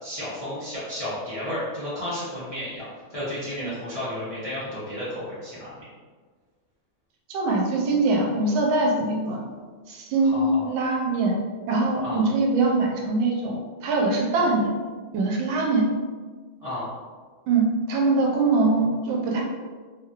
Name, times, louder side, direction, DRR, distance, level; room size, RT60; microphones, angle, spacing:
voice 1, 0.0-5.8 10.2-10.6 12.0-12.2 16.6-16.9, left 1 dB, 55° left, -11 dB, 0.3 m, -32 dB
voice 2, 7.3-9.4 9.9-11.4 11.7-14.7 15.1-15.8 17.5-19.4, right 3 dB, 85° right, 0 dB, 1.4 m, -23 dB
3.4 x 2.5 x 2.8 m, 1.5 s
omnidirectional pair, 2.1 m